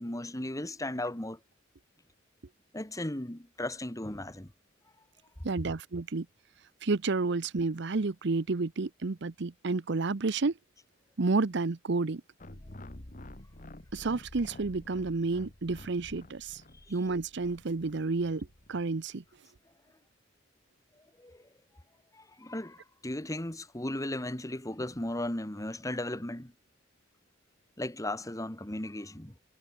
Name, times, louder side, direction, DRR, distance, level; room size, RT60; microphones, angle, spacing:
voice 1, 0.0-1.4 2.7-4.5 16.9-17.0 21.2-21.4 22.1-26.5 27.8-29.3, left 1 dB, 15° left, 1.9 m, -36 dB
voice 2, 5.4-6.3 6.8-10.5 11.2-12.2 13.9-16.6 16.9-19.2, right 3 dB, 65° right, 0.7 m, -30 dB
sound 1, 12.4-18.8, left 1 dB, 45° left, 1.9 m, -49 dB
head